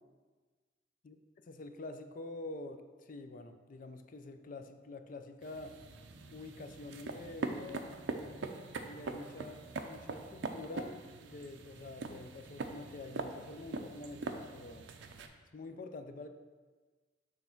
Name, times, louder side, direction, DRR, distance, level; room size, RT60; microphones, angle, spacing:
voice 1, 1.5-5.7 6.3-8.0 8.8-14.9 15.5-16.3, left 2 dB, 45° left, 8 dB, 0.4 m, -47 dB
sound 1, 5.4-15.3, right 3 dB, 70° right, 0.5 m, -43 dB
6.4 x 3.4 x 5.7 m, 1.4 s
head